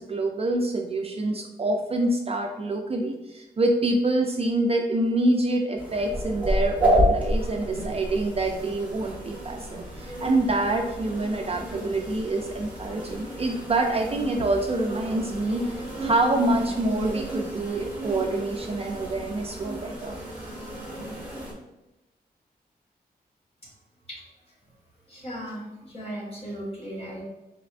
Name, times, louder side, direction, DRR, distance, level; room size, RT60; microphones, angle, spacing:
voice 1, 0.0-20.2, right 2 dB, 35° right, 2 dB, 0.4 m, -26 dB
sound 1, 5.8-21.5, equal, 10° right, 1.3 m, -31 dB
voice 2, 25.1-27.2, equal, 35° left, -5 dB, 1.5 m, -36 dB
4.3 x 4.0 x 2.5 m, 0.98 s
wide cardioid pair, 175°, 17 cm